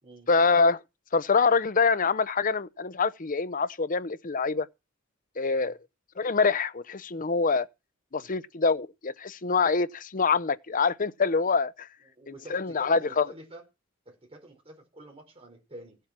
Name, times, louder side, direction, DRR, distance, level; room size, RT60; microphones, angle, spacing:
voice 1, 0.3-0.8 1.1-4.7 5.4-5.8 6.2-7.7 8.1-11.9 12.5-13.3, left 4 dB, 40° left, 0.7 m, -25 dB
voice 2, 12.0-13.6 14.0-16.0, right 1 dB, 25° right, 5.0 m, -48 dB
16.0 x 7.7 x 6.1 m
head